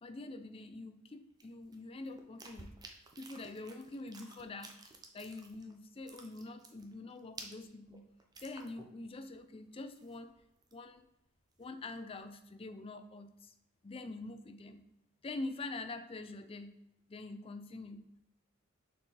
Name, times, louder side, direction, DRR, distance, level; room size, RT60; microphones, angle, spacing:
voice 1, 0.0-2.7 3.2-8.1 8.4-10.3 10.7-11.1 11.6-13.5 13.8-14.8 15.2-16.8 17.1-18.2, left 2 dB, 25° left, 9 dB, 0.4 m, -45 dB
sound 1, 1.4-5.7 6.0-9.1 9.3-9.4 9.8-11.0 11.4-12.2, right 3 dB, 20° right, 0.6 m, -53 dB
6.4 x 3.9 x 4.1 m, 0.89 s
head